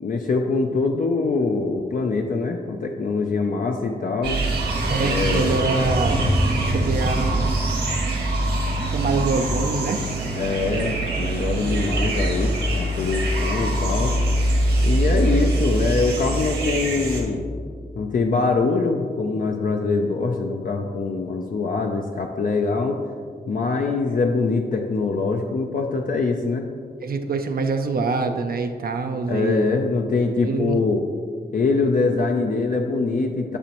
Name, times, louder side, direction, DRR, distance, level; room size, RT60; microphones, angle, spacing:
voice 1, 0.0-4.4 5.0-5.6 10.4-14.1 14.8-17.5 18.0-23.0 23.5-26.7 29.3-31.0 31.5-33.6, left 4 dB, 50° left, 2 dB, 0.5 m, -23 dB
sound 1, 4.2-17.2, right 1 dB, 85° right, 1.8 m, -23 dB
voice 2, 4.9-6.2 6.7-7.5 8.9-10.0 27.0-29.7 30.4-30.8, right 4 dB, 60° right, 6 dB, 0.5 m, -25 dB
10.0 x 6.1 x 3.0 m, 2.1 s
wide cardioid pair, 115°, 17 cm